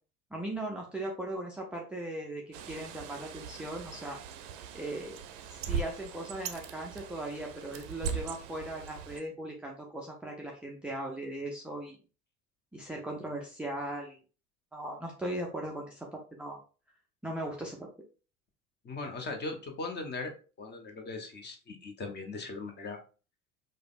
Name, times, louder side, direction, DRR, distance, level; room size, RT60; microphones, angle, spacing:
voice 1, 0.3-4.2 4.7-5.2 5.5-12.0 12.7-14.2 14.7-16.6 17.2-17.9, right 1 dB, 5° right, -2 dB, 0.4 m, -38 dB
Bird, 2.5-9.2, right 6 dB, 50° right, 0.6 m, -40 dB
voice 2, 18.8-20.3 20.6-23.0, left 3 dB, 25° left, 4 dB, 0.8 m, -39 dB
4.9 x 2.2 x 2.4 m, 0.35 s
figure-of-eight pair, 70°, 42 cm